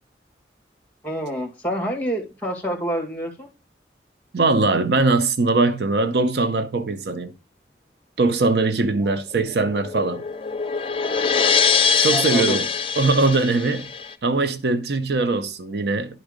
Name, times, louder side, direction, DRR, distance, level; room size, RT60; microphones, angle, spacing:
voice 1, 1.0-3.5 12.1-12.6, equal, 10° left, 2.0 m, -27 dB
voice 2, 4.3-7.3 8.2-10.2 12.0-12.7 13.0-13.9 14.2-16.2, right 3 dB, 70° right, 0.6 m, -21 dB
sound 1, 9.3-14.1, left 6 dB, 30° left, 0.5 m, -23 dB
10.5 x 3.6 x 5.0 m
head